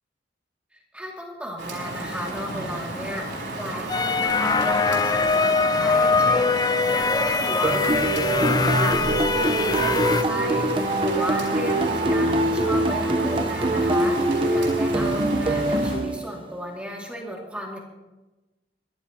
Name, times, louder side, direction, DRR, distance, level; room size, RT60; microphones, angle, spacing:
voice 1, 0.9-10.7 11.0-17.8, equal, 5° right, -1 dB, 2.4 m, -34 dB
Rain, 1.6-16.0, right 2 dB, 75° right, 5.3 m, -33 dB
sound 1, 3.9-10.2, left 4 dB, 20° left, 0.4 m, -22 dB
sound 2, 7.6-16.5, right 1 dB, 30° right, 0.9 m, -24 dB
23.5 x 15.0 x 2.9 m, 1.1 s
head